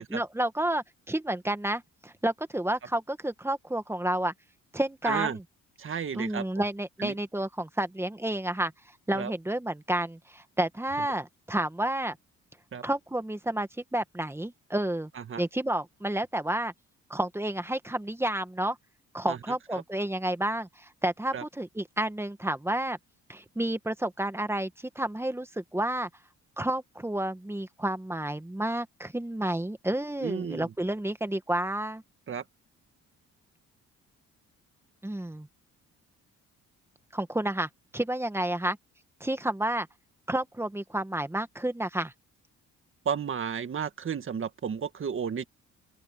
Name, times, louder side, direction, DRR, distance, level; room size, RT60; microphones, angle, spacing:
voice 1, 0.0-4.3 4.7-5.4 6.1-8.7 9.1-12.2 12.8-15.1 15.4-16.7 17.1-18.8 19.1-23.0 23.3-26.1 26.6-32.0 35.0-35.5 37.1-38.8 39.2-39.9 40.3-42.1, right 1 dB, 10° right, 1.6 m, -30 dB
voice 2, 5.0-5.4 5.8-6.4 7.0-7.1 9.1-9.3 12.7-12.8 15.3-15.4 19.3-19.4 21.3-21.4 30.2-30.7 32.3-32.4 43.1-45.5, right 7 dB, 45° right, 1.8 m, -32 dB
open air
cardioid pair, 90°, 30 cm